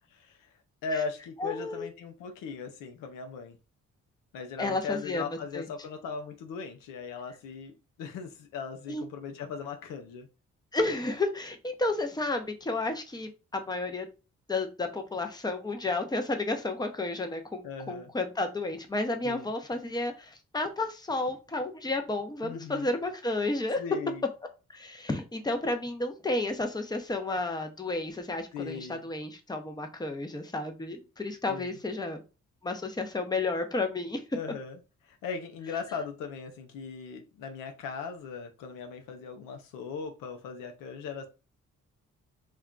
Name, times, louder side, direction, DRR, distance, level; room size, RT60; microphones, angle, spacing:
voice 1, 0.8-3.6 4.3-7.7 8.0-10.3 17.6-18.1 19.2-19.5 22.4-22.9 23.8-24.2 28.5-29.0 31.5-31.8 34.3-41.3, left 5 dB, 85° left, 5 dB, 0.6 m, -38 dB
voice 2, 1.4-1.9 4.6-5.2 5.5-5.7 8.9-9.0 10.7-14.1 14.5-23.8 24.7-32.2 32.6-34.2, left 2 dB, 15° left, 6 dB, 0.7 m, -32 dB
2.4 x 2.2 x 3.7 m, 0.30 s
supercardioid pair, 50°, 32 cm